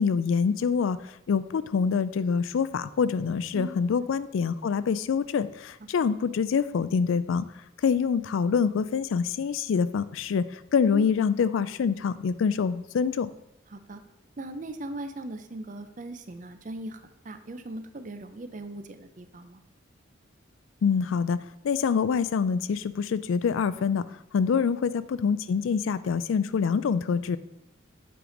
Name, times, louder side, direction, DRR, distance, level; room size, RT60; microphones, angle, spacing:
voice 1, 0.0-7.5 7.8-13.3 20.8-21.4 21.6-24.0 24.3-27.4, left 6 dB, 80° left, 15 dB, 0.3 m, -25 dB
voice 2, 13.7-14.0 14.4-19.6 24.5-24.7, right 2 dB, 40° right, 9 dB, 0.5 m, -39 dB
7.7 x 5.1 x 3.9 m, 0.88 s
head